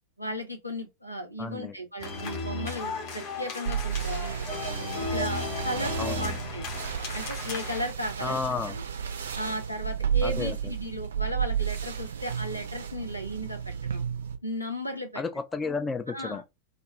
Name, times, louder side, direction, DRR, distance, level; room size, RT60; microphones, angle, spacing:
voice 1, 0.2-4.6 5.1-6.8 7.1-8.4 8.7-8.8 9.3-14.0 14.4-15.2 16.1-16.5, equal, 90° left, 0.7 m, -35 dB
voice 2, 1.4-1.7 6.0-6.4 8.2-8.8 10.2-10.6 15.2-16.4, left 4 dB, 20° left, 0.3 m, -32 dB
sound 1, 2.0-7.9, left 3 dB, 40° left, 0.7 m, -35 dB
sound 2, 3.7-14.4, right 8 dB, 65° right, 0.4 m, -32 dB
2.6 x 2.2 x 3.0 m
figure-of-eight pair, 90°, 0 cm